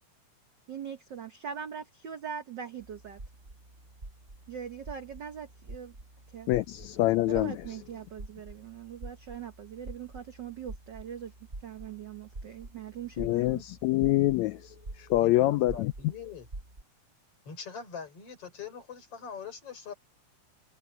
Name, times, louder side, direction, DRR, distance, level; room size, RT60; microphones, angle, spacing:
voice 1, 0.7-3.2 4.5-5.9 6.3-6.5 7.3-11.3 11.6-13.6, right 8 dB, 75° right, 1.0 m, -41 dB
sound 1, 2.8-16.8, right 2 dB, 20° right, 4.5 m, -47 dB
voice 2, 6.5-7.7 13.2-15.9, left 16 dB, 80° left, 1.7 m, -26 dB
voice 3, 15.1-16.5 17.5-19.9, left 6 dB, 50° left, 5.5 m, -42 dB
omnidirectional pair, 3.5 m